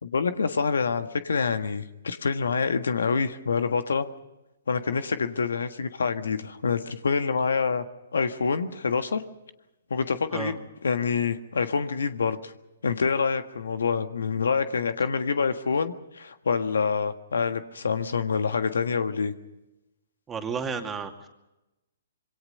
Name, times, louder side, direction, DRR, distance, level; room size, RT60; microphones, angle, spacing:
voice 1, 0.0-4.1 4.7-7.8 8.1-9.2 9.9-12.5 12.8-19.3, left 5 dB, 75° left, 9 dB, 1.5 m, -26 dB
voice 2, 20.3-21.3, right 5 dB, 15° right, 4 dB, 2.5 m, -32 dB
26.5 x 23.0 x 5.5 m, 0.97 s
hypercardioid pair, 130°, 0 cm